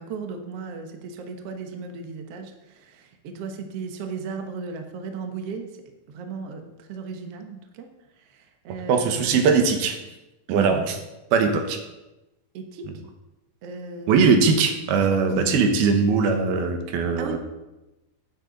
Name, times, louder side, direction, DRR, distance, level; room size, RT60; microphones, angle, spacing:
voice 1, 0.0-5.7 6.1-7.9 8.2-9.5 10.5-10.8 12.5-12.9 13.6-14.2 17.2-17.4, right 5 dB, 60° right, 4 dB, 1.6 m, -35 dB
voice 2, 8.9-10.0 10.5-10.9 11.3-11.8 12.9-13.0 14.1-17.4, right 5 dB, 90° right, 5 dB, 3.2 m, -20 dB
13.5 x 8.9 x 4.0 m, 1.0 s
omnidirectional pair, 4.3 m